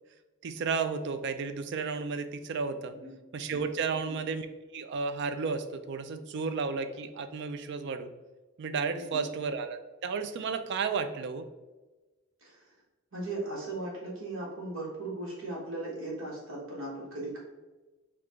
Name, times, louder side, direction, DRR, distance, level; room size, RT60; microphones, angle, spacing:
voice 1, 0.4-3.0 3.3-4.5 4.7-8.1 8.6-11.4, right 5 dB, 60° right, 10 dB, 0.4 m, -33 dB
voice 2, 13.1-17.4, right 2 dB, 90° right, -5 dB, 1.3 m, -38 dB
4.7 x 2.4 x 3.6 m, 1.2 s
head